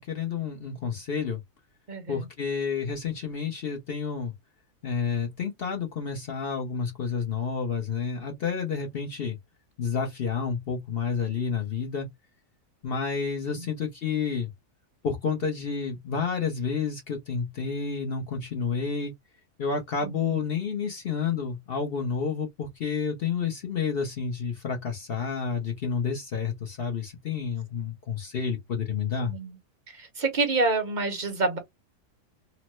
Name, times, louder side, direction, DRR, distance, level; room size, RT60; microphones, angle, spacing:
voice 1, 0.0-1.4 2.1-4.3 4.8-9.4 9.8-12.1 12.8-14.5 15.0-19.1 19.6-29.3, left 6 dB, 55° left, 0.7 m, -30 dB
voice 2, 1.9-2.3 13.5-13.7 20.0-20.4 29.2-29.6 29.9-31.6, right 3 dB, 45° right, 0.6 m, -28 dB
3.0 x 2.1 x 2.9 m
omnidirectional pair, 1.7 m